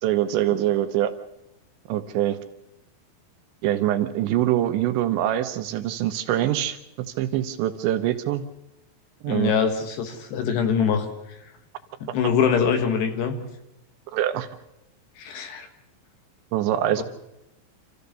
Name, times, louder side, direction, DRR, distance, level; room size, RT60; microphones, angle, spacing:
voice 1, 0.0-1.1 1.9-2.4 3.6-6.8 7.2-8.4 9.2-9.5 14.1-14.5 16.5-17.0, right 12 dB, 75° right, 8 dB, 2.9 m, -24 dB
voice 2, 9.3-11.1 12.0-13.4 15.2-15.7 17.0-17.1, left 7 dB, 65° left, 7 dB, 3.3 m, -23 dB
27.0 x 14.5 x 6.8 m, 0.89 s
omnidirectional pair, 5.5 m